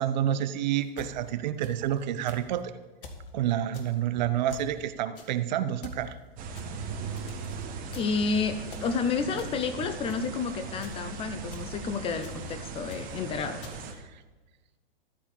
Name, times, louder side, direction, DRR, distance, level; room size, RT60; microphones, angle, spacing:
voice 1, 0.0-2.7 3.3-6.2, right 11 dB, 50° right, 11 dB, 0.8 m, -28 dB
sound 1, 0.8-2.0 2.3-2.6 3.0-3.3 3.7-4.0 4.5-4.8 5.1-5.4 5.8-6.1 6.6-7.6 7.9-8.2 8.7-9.0 9.4-9.7 10.1-10.3 10.8-11.1 11.5-11.8 12.2-12.5 12.9-13.2 13.6-14.0, left 3 dB, 60° left, 1.9 m, -46 dB
sound 2, 6.4-13.9, right 5 dB, 30° right, 1.4 m, -39 dB
voice 2, 8.0-13.6, left 5 dB, 20° left, 10 dB, 0.6 m, -30 dB
sound 3, 9.8-10.2 12.4-12.7, right 4 dB, 70° right, 1.6 m, -47 dB
13.5 x 4.9 x 8.6 m, 1.2 s
hypercardioid pair, 115°, 30 cm